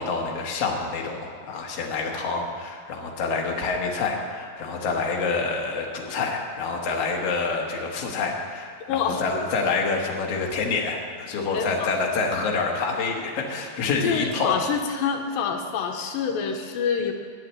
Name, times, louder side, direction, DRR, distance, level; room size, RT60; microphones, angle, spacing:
voice 1, 0.0-14.5, left 4 dB, 55° left, -1 dB, 2.1 m, -27 dB
voice 2, 8.9-9.2 11.5-11.9 14.0-17.1, left 7 dB, 85° left, 4 dB, 2.5 m, -26 dB
9.9 x 7.6 x 8.9 m, 2.1 s
omnidirectional pair, 4.1 m